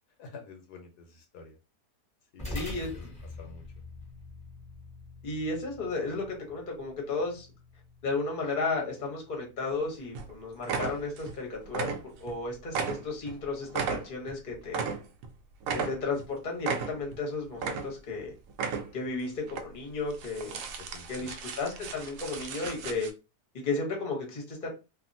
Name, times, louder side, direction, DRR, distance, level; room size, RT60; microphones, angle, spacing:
voice 1, 0.2-1.6 2.3-3.1 3.4-3.6 20.8-21.3, left 4 dB, 85° left, 3 dB, 1.4 m, -48 dB
sound 1, 2.4-11.0, left 2 dB, 5° left, 1.0 m, -46 dB
voice 2, 2.5-3.1 5.2-7.5 8.0-11.9 12.2-14.8 15.7-18.3 18.9-20.6 21.1-23.1 23.5-24.7, left 3 dB, 35° left, 0 dB, 1.0 m, -34 dB
sound 2, 9.7-9.9 10.2-10.3 10.6-11.4 11.7-12.4 12.7-15.3 15.6-16.3 16.6-17.2 17.5-18.2 18.5-19.1 19.5-19.6 20.1-23.1, right 6 dB, 70° right, 0.9 m, -35 dB
2.7 x 2.6 x 2.6 m, 0.29 s
omnidirectional pair, 1.7 m